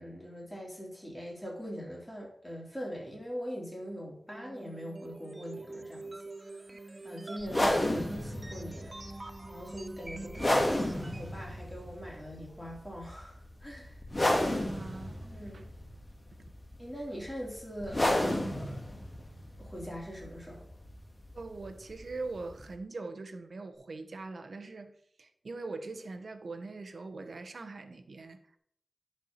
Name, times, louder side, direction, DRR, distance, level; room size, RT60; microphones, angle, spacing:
voice 1, 0.0-6.8 7.0-8.9 9.5-14.0 15.3-15.6 16.8-19.0 19.6-20.6, equal, 10° left, 3.8 m, -42 dB
sound 1, 4.3-11.4, right 2 dB, 35° right, 0.6 m, -45 dB
sound 2, 7.4-22.7, left 1 dB, 30° left, 1.7 m, -33 dB
voice 2, 14.6-15.6 16.4-16.5 21.3-24.9 25.2-28.6, right 3 dB, 70° right, 1.0 m, -42 dB
10.5 x 4.6 x 5.8 m
wide cardioid pair, 90°, 0 cm